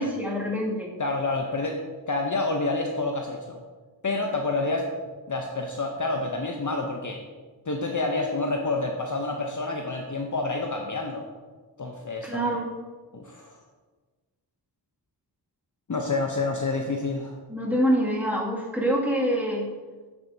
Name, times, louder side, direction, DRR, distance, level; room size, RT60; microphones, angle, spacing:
voice 1, 0.0-0.9 12.2-12.7 17.5-19.7, equal, 5° right, -5 dB, 2.3 m, -26 dB
voice 2, 1.0-1.8 2.1-3.6 4.0-4.9 5.3-7.2 7.6-11.3 11.8-12.4 13.1-13.6 15.9-17.4, left 3 dB, 45° left, 2 dB, 0.8 m, -28 dB
8.8 x 7.1 x 2.7 m, 1.4 s
cardioid pair, 50°, 42 cm